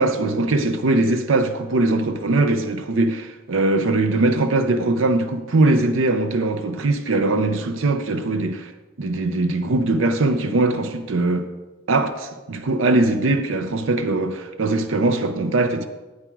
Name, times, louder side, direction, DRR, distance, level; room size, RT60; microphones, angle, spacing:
voice 1, 0.0-8.7 9.0-11.5 11.9-15.9, right 2 dB, 90° right, 0.6 m, -21 dB
9.5 x 8.1 x 4.6 m
head